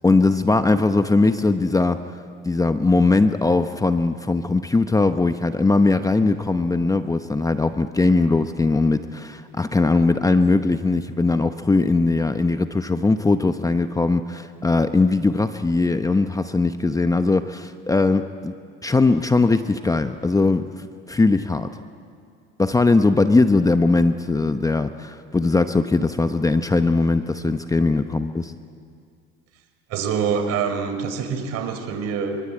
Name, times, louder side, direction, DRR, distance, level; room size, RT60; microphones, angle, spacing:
voice 1, 0.0-2.0 2.4-18.5 18.8-21.7 22.6-28.5, left 3 dB, 10° left, 9 dB, 0.9 m, -20 dB
voice 2, 29.9-32.4, right 6 dB, 60° right, 6 dB, 4.3 m, -25 dB
25.0 x 24.5 x 8.8 m, 2.2 s
supercardioid pair, 105°, 29 cm